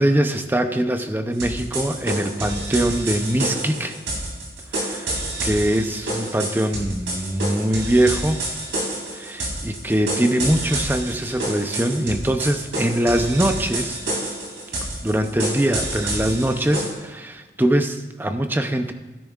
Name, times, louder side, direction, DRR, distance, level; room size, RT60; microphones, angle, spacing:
voice 1, 0.0-4.0 4.7-5.2 5.4-8.4 9.1-14.0 15.0-18.9, right 1 dB, 10° right, 7 dB, 0.5 m, -22 dB
sound 1, 1.3-16.9, right 1 dB, 90° right, 2.9 m, -28 dB
16.0 x 10.0 x 2.4 m, 1.2 s
head